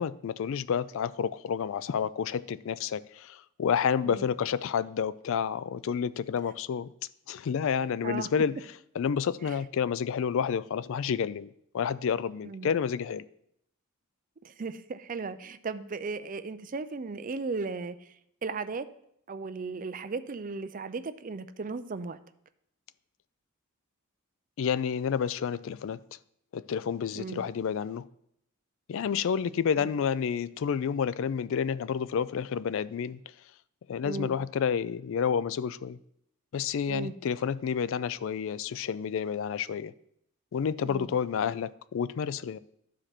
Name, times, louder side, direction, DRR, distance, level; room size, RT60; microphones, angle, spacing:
voice 1, 0.0-6.9 7.3-8.5 9.0-11.5 11.7-13.2 24.6-26.0 26.5-28.0 28.9-33.2 33.9-36.0 36.5-39.9 40.5-42.6, left 7 dB, 60° left, 0.3 m, -30 dB
voice 2, 14.4-18.9 19.3-22.2 27.2-27.4 29.8-29.9 34.0-34.4 36.9-37.1 40.8-41.1, right 4 dB, 35° right, 0.4 m, -36 dB
12.5 x 5.0 x 4.4 m
head